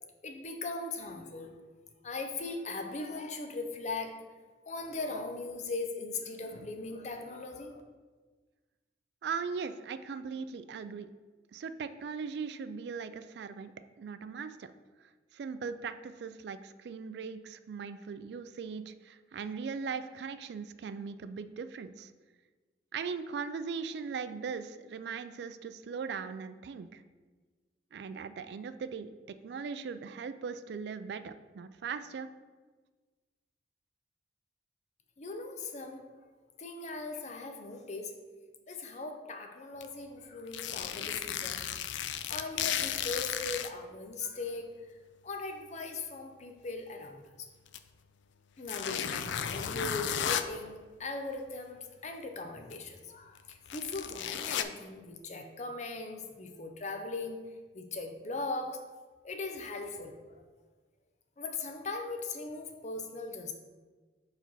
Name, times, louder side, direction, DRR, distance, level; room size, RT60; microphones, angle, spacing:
voice 1, 0.0-1.6 2.0-4.2 4.7-7.8 35.2-36.0 36.6-38.1 38.7-41.7 42.1-44.7 45.2-47.5 48.6-57.4 57.7-58.8 59.2-60.4 61.4-63.5, left 3 dB, 40° left, 5 dB, 0.6 m, -39 dB
voice 2, 9.2-11.1 11.5-14.7 15.0-22.1 22.9-27.0 27.9-32.3, right 5 dB, 65° right, 12 dB, 0.3 m, -39 dB
sound 1, 39.8-39.9 40.5-43.7 44.6-44.7 47.7-47.8 48.6-50.5 52.7-52.8 53.4-54.6, left 9 dB, 90° left, 0.4 m, -34 dB
4.8 x 4.4 x 5.4 m, 1.4 s
head